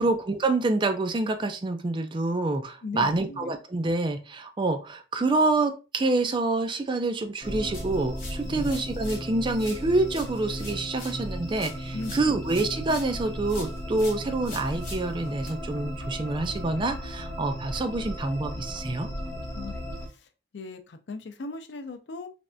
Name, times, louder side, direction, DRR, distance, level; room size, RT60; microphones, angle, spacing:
voice 1, 0.0-19.1, right 2 dB, 25° right, 7 dB, 0.4 m, -27 dB
voice 2, 2.8-3.5 8.4-8.7 11.9-12.3 19.5-20.3 20.5-22.3, left 3 dB, 70° left, 8 dB, 0.5 m, -38 dB
sound 1, 7.4-20.1, equal, 20° left, 1.2 m, -35 dB
sound 2, 7.7-9.3 9.6-13.2 13.5-15.5, left 2 dB, 50° left, 2.0 m, -45 dB
3.4 x 3.2 x 2.5 m, 0.31 s
head